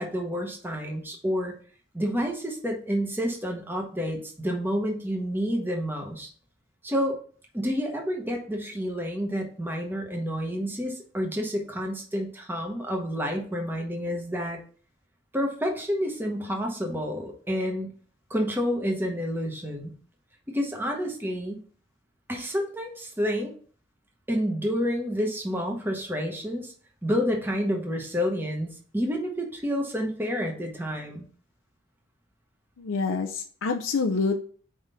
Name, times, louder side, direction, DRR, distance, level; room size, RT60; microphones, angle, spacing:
voice 1, 0.0-1.5 1.9-6.3 6.8-7.2 7.5-14.6 15.3-17.9 18.3-19.9 20.5-21.6 22.3-23.5 24.3-26.7 27.0-31.3, equal, 10° right, 1 dB, 1.0 m, -29 dB
voice 2, 32.8-34.4, left 4 dB, 85° left, 4 dB, 0.5 m, -27 dB
4.8 x 3.7 x 5.5 m, 0.44 s
head